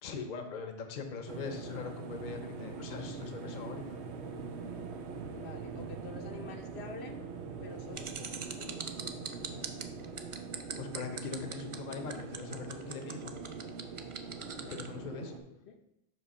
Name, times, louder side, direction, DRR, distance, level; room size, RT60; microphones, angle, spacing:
voice 1, 0.0-4.0 10.8-13.3 14.7-15.3, left 5 dB, 50° left, 6 dB, 0.8 m, -41 dB
sound 1, 1.3-15.4, right 5 dB, 85° right, 1.0 m, -43 dB
voice 2, 5.3-7.2 7.6-9.7 14.5-14.8 15.7-15.8, left 5 dB, 75° left, 4 dB, 1.0 m, -49 dB
sound 2, 7.9-14.9, right 6 dB, 45° right, 0.4 m, -41 dB
7.5 x 3.2 x 5.4 m, 0.81 s
omnidirectional pair, 1.1 m